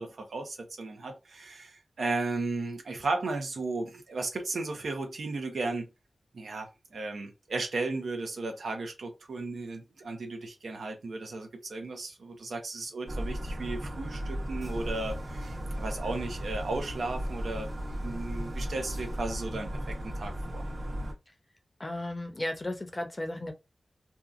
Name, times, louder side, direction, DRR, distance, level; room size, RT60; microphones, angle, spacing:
voice 1, 0.0-5.9 6.3-20.6, right 3 dB, 85° right, 0.8 m, -35 dB
sound 1, 13.1-21.1, equal, 50° right, 1.0 m, -35 dB
voice 2, 21.8-23.5, left 1 dB, 25° left, 0.6 m, -34 dB
2.8 x 2.4 x 2.5 m
wide cardioid pair, 85°, 0 cm